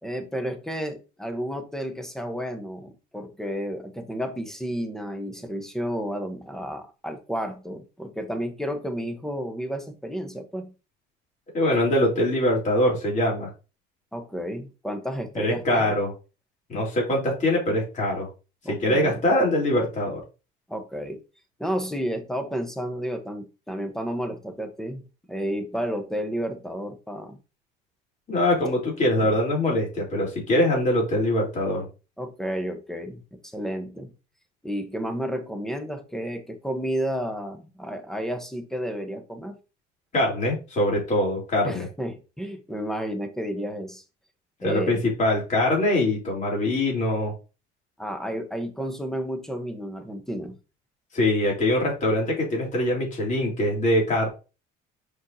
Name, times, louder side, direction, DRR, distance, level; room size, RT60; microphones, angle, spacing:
voice 1, 0.0-10.7 14.1-16.0 18.6-19.2 20.7-21.2 21.6-25.0 25.3-27.4 29.2-29.4 32.2-34.1 34.6-39.6 41.6-44.0 44.6-45.0 48.0-50.6, equal, ahead, 1.2 m, -31 dB
voice 2, 11.5-13.5 15.3-16.1 16.7-18.3 18.7-20.2 28.3-31.9 40.1-41.9 44.6-47.3 51.1-54.3, left 1 dB, 40° left, 4.0 m, -23 dB
6.5 x 5.4 x 2.9 m
cardioid pair, 120°, 20 cm